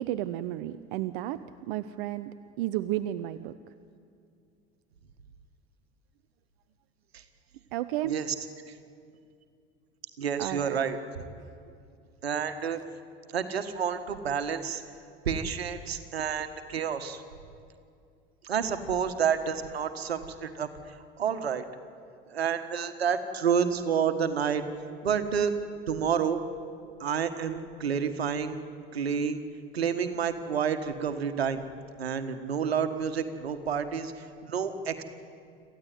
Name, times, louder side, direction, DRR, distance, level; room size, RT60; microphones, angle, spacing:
voice 1, 0.0-3.6 7.7-8.2 10.4-10.8 11.4-11.8, right 14 dB, 60° right, 13 dB, 0.8 m, -33 dB
voice 2, 10.2-11.2 12.2-12.8 13.3-14.8 15.2-17.2 18.4-21.6 22.3-24.6 25.0-25.5 25.9-26.4 27.0-28.6 28.9-29.4 29.7-31.6 32.0-35.0, right 7 dB, 80° right, 9 dB, 1.6 m, -29 dB
26.5 x 15.0 x 9.4 m, 2.4 s
figure-of-eight pair, 70°, 31 cm